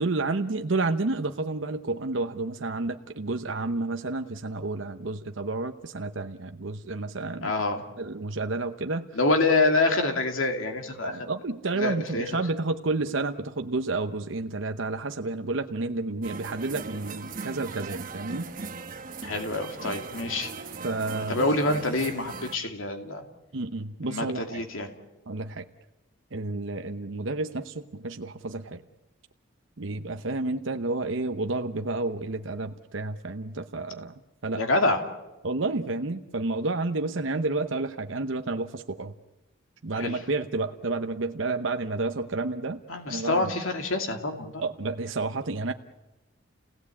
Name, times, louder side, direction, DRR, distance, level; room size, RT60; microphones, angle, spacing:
voice 1, 0.0-7.5 8.0-9.1 11.0-18.5 20.8-21.5 23.5-24.6 25.3-25.7 26.3-28.8 29.8-34.6 35.4-39.1 39.8-42.8 43.1-43.5 44.6-45.7, right 3 dB, 65° right, 7 dB, 0.8 m, -30 dB
voice 2, 7.4-7.8 9.1-11.3 11.7-12.3 19.2-20.5 21.3-23.2 24.0-24.9 34.5-35.0 40.0-40.2 42.9-44.6, left 2 dB, 80° left, 4 dB, 2.5 m, -26 dB
sound 1, 16.2-22.6, right 4 dB, 40° right, 1.1 m, -39 dB
30.0 x 17.5 x 8.4 m, 1.1 s
head